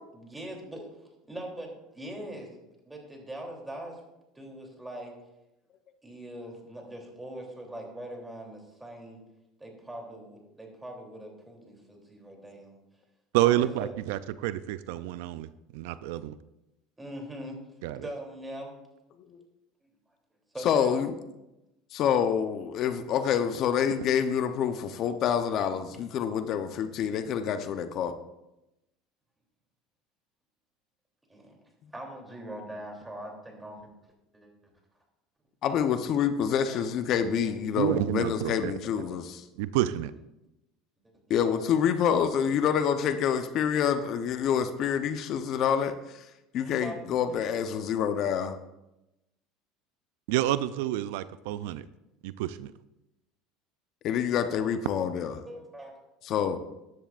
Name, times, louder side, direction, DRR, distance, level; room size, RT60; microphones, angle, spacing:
voice 1, 0.1-0.9 1.3-2.5 2.8-4.0 4.3-5.1 6.0-9.2 9.6-12.7 13.4-13.9 17.0-17.6 18.0-18.7 19.8-19.9 20.5-21.0 31.3-31.6 31.9-33.9 34.3-34.5 36.7-36.8 37.5-37.6 39.0-39.2 41.4-41.5 46.6-47.0 47.4-47.6 55.5-55.9, right 1 dB, 10° right, 1 dB, 3.1 m, -41 dB
voice 2, 13.3-16.4 17.8-18.1 37.8-38.7 39.6-40.1 50.3-51.9 52.2-52.7, right 14 dB, 80° right, 15 dB, 0.4 m, -29 dB
voice 3, 20.6-21.2 21.9-28.1 35.6-39.4 41.3-45.9 46.5-48.6 54.0-55.3 56.2-56.6, left 8 dB, 50° left, 9 dB, 0.8 m, -27 dB
14.5 x 10.5 x 2.5 m, 0.92 s
supercardioid pair, 105°, 0 cm